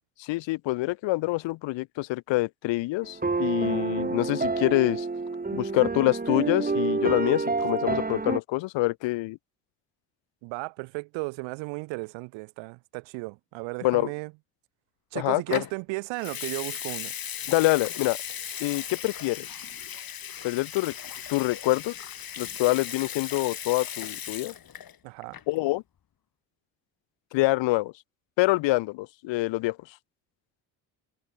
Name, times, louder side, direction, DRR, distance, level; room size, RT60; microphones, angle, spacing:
voice 1, 0.2-5.1 5.5-9.4 13.8-14.1 15.1-15.6 17.5-18.2 18.6-19.5 20.4-20.9 21.3-21.9 22.4-24.5 25.5-25.8 27.3-27.9 28.4-29.8, left 20 dB, 80° left, 1.4 m, -26 dB
sound 1, 3.0-8.4, right 3 dB, 20° right, 1.9 m, -28 dB
voice 2, 10.4-14.3 15.1-17.2 25.0-25.4, right 28 dB, 90° right, 4.9 m, -35 dB
Water tap faucet / Sink (filling or washing) / Liquid, 15.5-15.7 16.2-25.0 25.2-25.6, left 9 dB, 50° left, 2.4 m, -37 dB
supercardioid pair, 65°, 44 cm